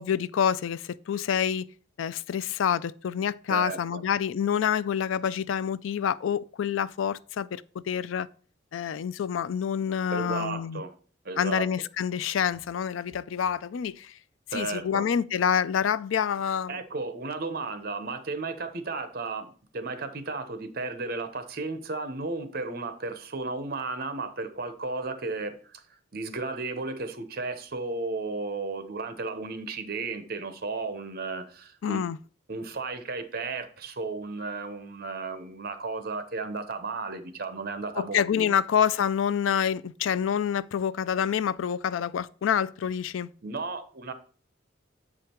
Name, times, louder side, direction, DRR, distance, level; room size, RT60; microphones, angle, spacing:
voice 1, 0.0-1.6 2.0-8.3 8.7-10.8 11.4-14.1 14.5-16.8 31.8-32.2 38.0-43.3, left 8 dB, 90° left, 0.4 m, -27 dB
voice 2, 3.5-4.0 10.1-10.9 11.2-11.6 14.5-15.1 16.7-25.8 26.1-32.0 32.5-38.5 43.4-44.1, right 3 dB, 50° right, 0.9 m, -34 dB
7.2 x 5.0 x 4.4 m
head